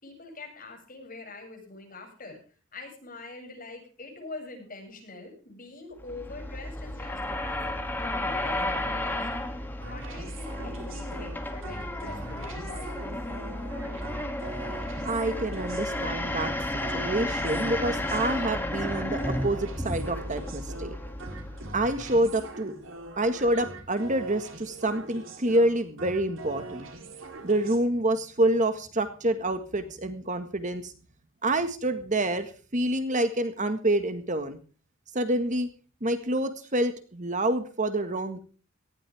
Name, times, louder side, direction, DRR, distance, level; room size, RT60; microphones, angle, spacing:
voice 1, 0.0-9.6 9.8-13.1, left 3 dB, 40° left, 2 dB, 7.6 m, -44 dB
sound 1, 6.0-22.3, left 1 dB, 10° left, 2.5 m, -33 dB
sound 2, 9.8-27.8, right 2 dB, 70° right, 3.6 m, -43 dB
voice 2, 15.0-16.5 16.9-21.0 21.7-22.7 23.2-26.9 27.4-30.9 31.4-34.6 35.1-35.7 36.0-38.4, right 1 dB, 35° right, 9 dB, 1.7 m, -27 dB
18.5 x 15.5 x 3.5 m, 0.38 s
head